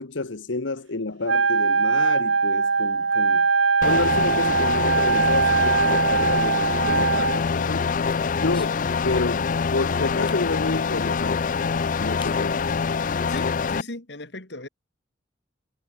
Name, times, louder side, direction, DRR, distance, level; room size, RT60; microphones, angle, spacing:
voice 1, 0.0-3.5 3.8-7.9 8.3-11.5 12.0-12.7, left 3 dB, 80° left, 1.1 m, -30 dB
Wind instrument woodwind instrument, 1.3-7.4, right 5 dB, 85° right, 1.4 m, -21 dB
sound 1, 3.8-13.8, left 5 dB, 45° left, 0.4 m, -25 dB
sound 2, 8.0-9.6 10.3-10.5 11.6-11.7 12.2-12.4 12.7-12.8 13.1-13.5, left 2 dB, 25° left, 5.4 m, -46 dB
voice 2, 13.3-14.7, left 2 dB, 60° left, 2.8 m, -36 dB
head